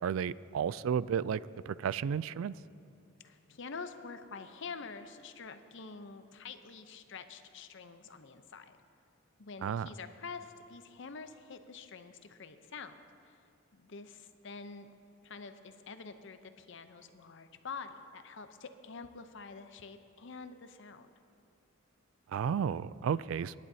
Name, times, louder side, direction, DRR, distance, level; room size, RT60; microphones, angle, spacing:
voice 1, 0.0-2.5 9.6-9.9 22.3-23.5, right 7 dB, 75° right, 19 dB, 0.3 m, -33 dB
voice 2, 3.2-8.8 9.4-12.9 13.2-13.4 13.7-14.9 15.2-21.1, left 5 dB, 60° left, 9 dB, 0.7 m, -47 dB
26.5 x 10.5 x 2.8 m, 2.5 s
head